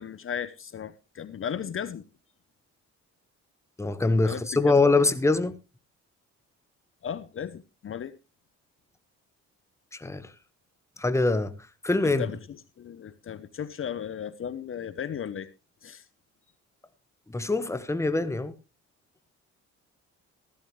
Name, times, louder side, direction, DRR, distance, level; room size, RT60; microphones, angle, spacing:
voice 1, 0.0-2.0 4.2-4.7 7.0-8.1 12.0-15.5 15.8-16.0, left 8 dB, 45° left, 0.8 m, -36 dB
voice 2, 3.8-5.6 10.0-10.3 11.0-11.5 11.8-12.3 17.3-18.5, left 3 dB, 10° left, 1.0 m, -23 dB
15.0 x 12.5 x 3.2 m
cardioid pair, 90°, 30 cm